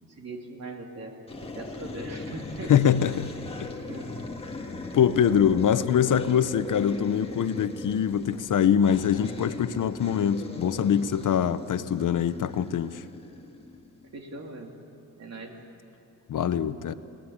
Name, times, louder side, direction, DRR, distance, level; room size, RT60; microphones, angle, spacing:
voice 1, 0.0-2.7 3.0-3.2 3.8-4.1 5.7-5.8 14.1-14.7 15.2-15.6, right 2 dB, 50° right, 2 dB, 3.0 m, -40 dB
sound 1, 1.3-14.2, left 2 dB, 15° left, 1.8 m, -39 dB
voice 2, 2.7-3.3 3.6-3.7 4.9-13.0 16.3-16.9, left 8 dB, 65° left, 12 dB, 0.9 m, -23 dB
29.0 x 19.5 x 8.8 m, 2.7 s
wide cardioid pair, 165°, 33 cm